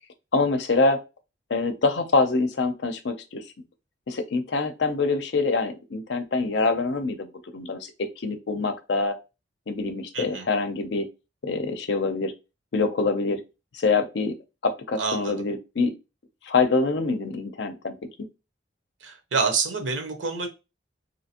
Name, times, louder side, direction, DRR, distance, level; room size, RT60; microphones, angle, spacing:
voice 1, 0.3-1.0 1.5-3.4 4.1-9.2 9.7-11.1 11.4-12.3 12.7-13.4 13.7-14.4 14.6-15.9 16.4-18.0, left 3 dB, 70° left, 8 dB, 0.5 m, -25 dB
voice 2, 10.1-10.4 15.0-15.4 19.0-20.5, right 4 dB, 90° right, 6 dB, 0.8 m, -27 dB
3.3 x 2.7 x 2.8 m, 0.28 s
head